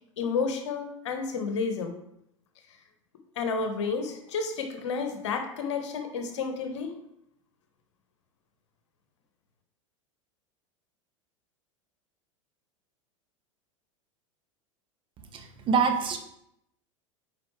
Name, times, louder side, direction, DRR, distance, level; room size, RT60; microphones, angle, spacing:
voice 1, 0.2-1.9 3.4-6.9, left 5 dB, 60° left, 6 dB, 1.2 m, -31 dB
voice 2, 15.3-16.2, right 6 dB, 30° right, 5 dB, 1.0 m, -25 dB
8.7 x 5.0 x 3.3 m, 0.79 s
figure-of-eight pair, 85°, 17 cm